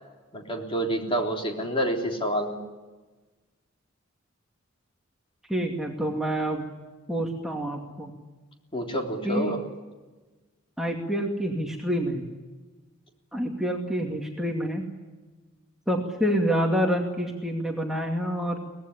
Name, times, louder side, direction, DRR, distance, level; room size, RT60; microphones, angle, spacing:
voice 1, 0.3-2.6 8.7-9.6, right 1 dB, 25° left, 2 dB, 3.5 m, -28 dB
voice 2, 5.5-6.6 7.1-8.1 9.2-9.5 10.8-12.2 13.3-14.8 15.9-18.6, equal, ahead, 0 dB, 2.4 m, -27 dB
24.0 x 19.0 x 10.0 m, 1.3 s
head